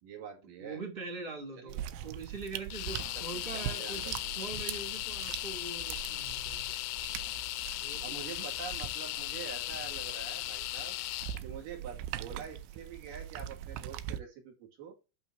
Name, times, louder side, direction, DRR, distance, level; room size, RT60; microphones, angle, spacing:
voice 1, 0.0-0.8 1.6-1.9 3.0-4.5 8.0-11.0 11.4-15.0, right 7 dB, 60° right, 3.8 m, -46 dB
voice 2, 0.6-6.8 7.8-8.5, right 4 dB, 40° right, 0.7 m, -43 dB
sound 1, 1.7-14.2, right 11 dB, 85° right, 2.8 m, -42 dB
sound 2, 2.7-11.4, left 18 dB, 85° left, 2.5 m, -37 dB
11.5 x 4.1 x 4.2 m
omnidirectional pair, 4.7 m